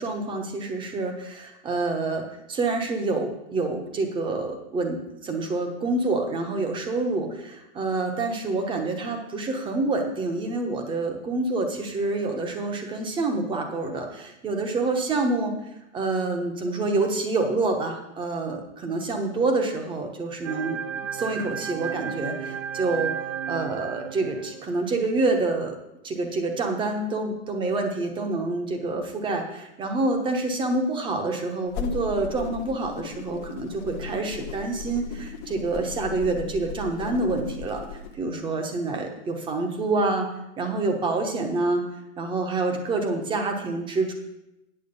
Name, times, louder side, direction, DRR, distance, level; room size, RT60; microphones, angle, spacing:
voice 1, 0.0-2.2 2.5-15.5 15.9-20.8 21.1-23.1 23.5-25.8 26.0-37.8 38.1-40.3 40.6-41.9 42.2-44.1, right 3 dB, 10° right, 4 dB, 1.0 m, -27 dB
sound 1, 20.4-24.9, right 8 dB, 70° right, 0.8 m, -33 dB
sound 2, 31.7-38.2, left 5 dB, 20° left, 0.4 m, -37 dB
8.9 x 7.7 x 5.4 m, 0.91 s
hypercardioid pair, 145°, 40 cm